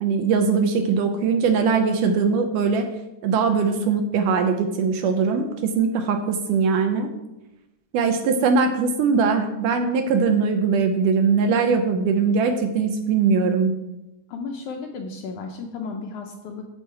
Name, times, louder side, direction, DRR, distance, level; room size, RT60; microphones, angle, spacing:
voice 1, 0.0-2.9 3.2-7.1 7.9-13.8, right 5 dB, 75° right, 6 dB, 2.0 m, -21 dB
voice 2, 14.3-16.6, left 4 dB, 75° left, 3 dB, 1.8 m, -34 dB
8.3 x 7.2 x 4.6 m, 0.94 s
omnidirectional pair, 4.1 m